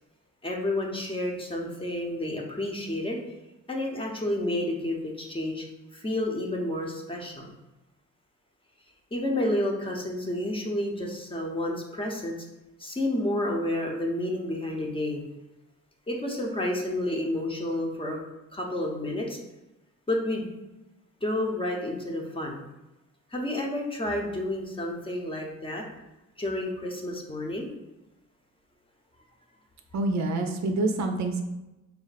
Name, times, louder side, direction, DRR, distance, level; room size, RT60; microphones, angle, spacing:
voice 1, 0.4-3.2 3.7-5.6 5.9-7.5 9.1-12.4 12.8-15.2 16.1-18.2 18.5-19.4 20.1-20.5 21.2-22.6 23.3-25.8 26.4-27.7, left 1 dB, 15° left, 0 dB, 0.7 m, -30 dB
voice 2, 29.9-31.4, right 2 dB, 65° right, 4 dB, 0.6 m, -26 dB
4.4 x 2.1 x 4.0 m, 1.0 s
cardioid pair, 90°, 30 cm